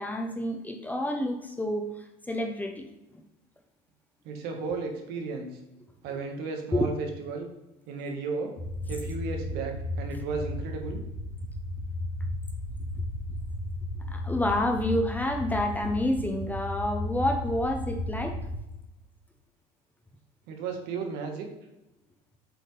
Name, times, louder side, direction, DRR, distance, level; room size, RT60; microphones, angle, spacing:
voice 1, 0.0-2.8 6.1-6.2 6.7-6.9 14.1-18.4, left 1 dB, 10° left, 4 dB, 0.7 m, -29 dB
voice 2, 4.2-5.6 6.0-7.5 7.9-8.5 8.9-11.0 20.5-21.5, right 4 dB, 70° right, 3 dB, 1.5 m, -34 dB
sound 1, 8.6-18.6, left 1 dB, 70° left, 2.3 m, -34 dB
7.7 x 4.2 x 3.3 m, 0.93 s
supercardioid pair, 115°, 17 cm